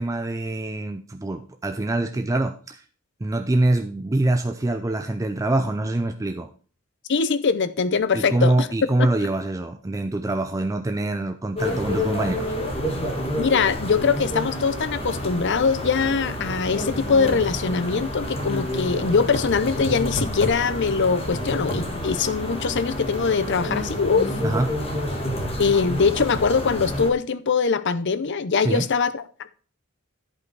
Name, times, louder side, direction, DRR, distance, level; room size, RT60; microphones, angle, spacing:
voice 1, 0.0-2.8 3.2-6.5 8.1-12.5 24.4-24.7 28.6-28.8, right 2 dB, 15° right, 0.4 m, -24 dB
voice 2, 7.1-8.7 9.0-9.1 13.4-24.3 25.6-29.5, left 5 dB, 55° left, 0.6 m, -22 dB
sound 1, 11.6-27.1, left 1 dB, 25° left, 1.5 m, -29 dB
11.0 x 5.4 x 4.7 m
head